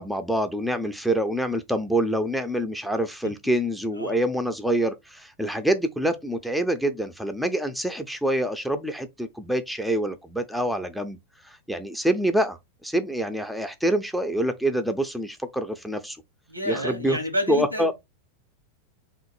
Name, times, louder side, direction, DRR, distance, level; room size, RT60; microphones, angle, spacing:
voice 1, 0.0-11.2 11.4-16.2 16.7-17.2 17.5-17.9, right 1 dB, ahead, 0.6 m, -26 dB
voice 2, 16.5-17.9, left 1 dB, 85° right, 1.5 m, -29 dB
3.7 x 2.9 x 4.3 m
figure-of-eight pair, 90°, 0 cm